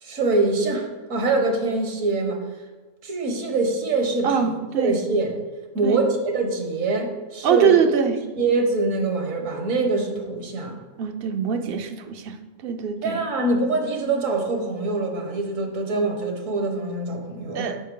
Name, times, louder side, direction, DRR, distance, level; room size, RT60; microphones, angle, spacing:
voice 1, 0.0-2.4 3.0-5.4 5.7-7.8 8.4-10.8 13.0-17.7, right 3 dB, 70° right, 3 dB, 1.5 m, -24 dB
voice 2, 4.2-5.0 5.8-6.0 7.4-8.2 11.0-12.4 12.6-13.2 17.5-17.8, right 7 dB, 55° right, 7 dB, 0.7 m, -23 dB
9.2 x 5.4 x 3.7 m, 1.3 s
omnidirectional pair, 1.4 m